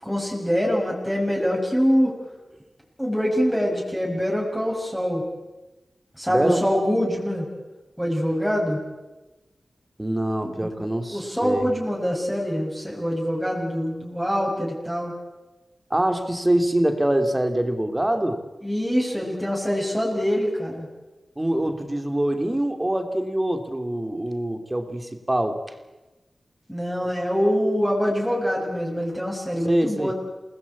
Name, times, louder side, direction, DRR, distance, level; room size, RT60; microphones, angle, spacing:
voice 1, 0.0-2.2 3.0-5.2 6.2-7.5 8.0-8.8 10.4-15.1 18.6-20.9 26.7-30.1, equal, ahead, -3 dB, 6.6 m, -24 dB
voice 2, 6.3-6.6 10.0-11.7 15.9-18.4 21.4-25.6 29.6-30.1, right 1 dB, 20° right, 7 dB, 2.9 m, -24 dB
28.0 x 19.5 x 8.5 m, 1.1 s
wide cardioid pair, 60°, 0 cm